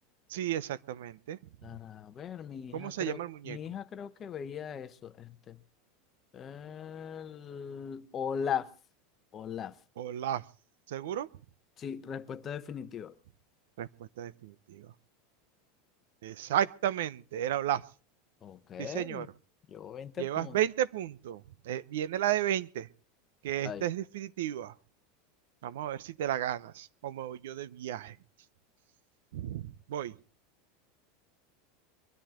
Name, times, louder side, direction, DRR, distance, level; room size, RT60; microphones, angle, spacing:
voice 1, 0.3-1.4 2.7-3.6 10.0-10.4 10.9-11.3 13.8-14.9 16.2-17.8 18.8-19.3 20.2-22.9 23.4-24.7 25.6-28.2 29.3-30.2, right 11 dB, 80° right, 0.8 m, -33 dB
voice 2, 1.6-3.2 3.5-5.6 6.3-8.7 9.3-9.8 11.8-13.1 18.4-19.3 19.7-20.6 23.6-23.9, left 8 dB, 20° left, 0.9 m, -39 dB
23.0 x 13.5 x 3.7 m
supercardioid pair, 170°, 0 cm